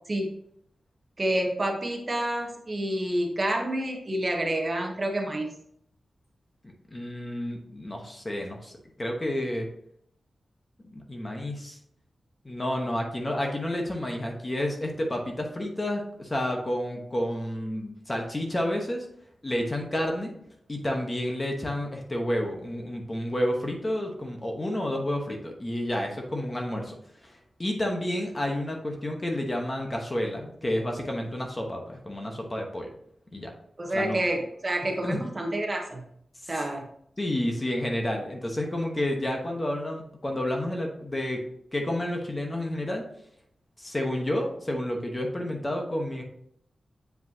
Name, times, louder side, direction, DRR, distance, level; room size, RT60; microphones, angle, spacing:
voice 1, 1.2-5.5 13.3-13.4 33.8-36.0 36.5-36.9, right 1 dB, 30° right, 1 dB, 1.0 m, -28 dB
voice 2, 6.9-9.7 10.8-11.8 12.4-19.1 19.4-20.4 20.7-32.9 33.3-33.5 33.8-34.2 35.0-35.2 36.4-36.5 37.2-41.4 41.7-43.1 43.8-46.2, left 1 dB, 20° left, 1 dB, 1.0 m, -30 dB
7.8 x 5.1 x 2.8 m, 0.70 s
wide cardioid pair, 150°, 0 cm